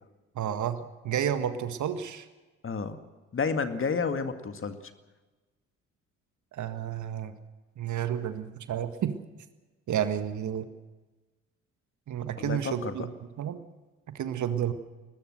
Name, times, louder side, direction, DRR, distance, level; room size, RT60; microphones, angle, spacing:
voice 1, 0.4-2.3 6.5-7.4 7.8-9.2 9.9-10.7 12.1-13.1 13.4-13.7 14.1-14.7, right 9 dB, 50° right, 10 dB, 1.7 m, -31 dB
voice 2, 2.6-3.0 3.3-4.8 12.4-13.0, left 5 dB, 30° left, 8 dB, 2.1 m, -30 dB
21.0 x 21.0 x 6.5 m, 1.2 s
figure-of-eight pair, 50°, 39 cm